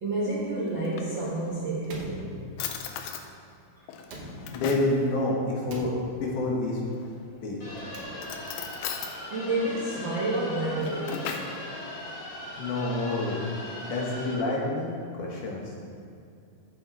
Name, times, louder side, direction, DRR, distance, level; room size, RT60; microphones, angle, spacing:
voice 1, 0.0-2.4 3.8-3.9 9.3-11.3, right 2 dB, 55° right, -7 dB, 1.4 m, -29 dB
Drawer open or close, 0.7-1.6 2.2-2.3 2.6-3.3 3.9-5.0 6.8-7.4 8.1-9.2 10.5-11.6, left 8 dB, 90° left, 2.5 m, -37 dB
Slam, 1.8-3.0 4.0-4.9 5.7-6.6 7.7-8.6, right 1 dB, 75° right, 1.3 m, -43 dB
voice 2, 4.5-5.9 6.2-6.8 7.4-7.8 12.6-13.4 13.9-14.9 15.2-15.6, left 2 dB, 65° left, -3 dB, 2.8 m, -28 dB
sound 1, 7.6-14.3, left 1 dB, 35° left, 2.4 m, -39 dB
13.5 x 7.5 x 3.6 m, 2.5 s
omnidirectional pair, 4.0 m